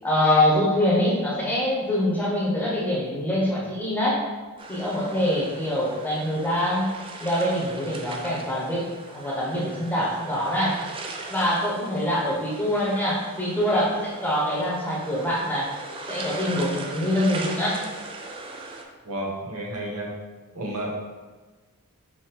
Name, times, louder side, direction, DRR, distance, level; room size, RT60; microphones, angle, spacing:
voice 1, 0.0-4.2 4.7-6.9 7.2-10.8 11.3-15.7 16.1-17.8, left 1 dB, 5° left, -6 dB, 0.9 m, -24 dB
sound 1, 4.6-18.8, right 3 dB, 25° right, 0.3 m, -39 dB
voice 2, 19.0-20.1 20.5-20.9, right 1 dB, 80° right, -2 dB, 1.0 m, -31 dB
3.9 x 3.0 x 4.2 m, 1.3 s
head